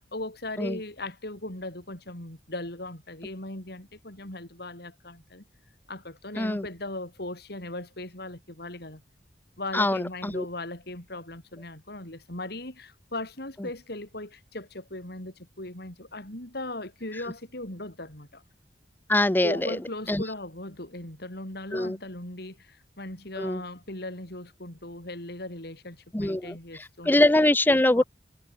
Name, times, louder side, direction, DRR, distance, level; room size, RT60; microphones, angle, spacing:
voice 1, 0.1-5.4 5.9-9.0 9.6-18.3 19.4-22.5 23.0-27.5 28.0-28.1, left 2 dB, 65° left, 5.8 m, -38 dB
voice 2, 6.4-6.7 9.7-10.5 19.1-19.8 20.1-20.2 21.7-22.0 23.4-23.6 26.1-28.0, left 1 dB, 10° left, 0.6 m, -23 dB
head